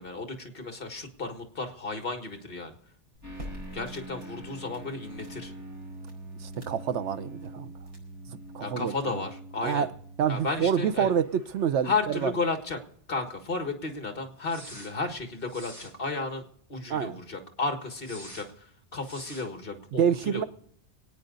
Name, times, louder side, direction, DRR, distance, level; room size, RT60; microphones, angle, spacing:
voice 1, 0.0-2.8 3.7-5.5 8.6-9.9 10.3-11.1 11.8-12.8 13.1-18.7 18.9-20.4, left 3 dB, 55° left, 1.9 m, -33 dB
sound 1, 3.1-8.6, left 1 dB, 55° right, 4.9 m, -49 dB
sound 2, 3.2-12.4 12.7-12.8 14.4-14.9 15.5-15.9 18.0-18.5 19.0-19.5, right 1 dB, 15° right, 2.9 m, -45 dB
voice 2, 6.4-7.7 8.5-9.2 9.6-9.9 10.2-12.3 16.9-17.2 19.9-20.4, right 8 dB, 85° right, 1.1 m, -27 dB
25.5 x 9.3 x 4.0 m
omnidirectional pair, 1.2 m